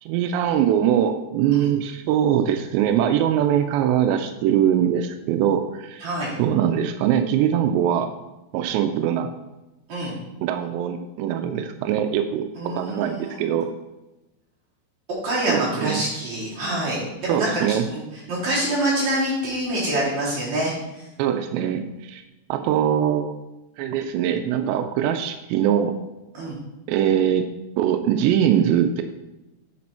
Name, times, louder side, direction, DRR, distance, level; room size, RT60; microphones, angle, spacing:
voice 1, 0.0-6.1 6.4-8.1 8.5-9.3 10.4-13.7 15.5-16.0 17.3-17.9 21.2-22.2 22.5-23.4 23.8-26.0 26.9-27.5 27.8-29.0, right 9 dB, 90° right, 8 dB, 2.8 m, -22 dB
voice 2, 6.0-6.3 9.9-10.1 12.5-13.5 15.2-18.0 18.3-20.7 26.3-26.6, right 1 dB, 45° right, -8 dB, 4.3 m, -26 dB
8.5 x 6.1 x 4.3 m, 1.0 s
omnidirectional pair, 4.9 m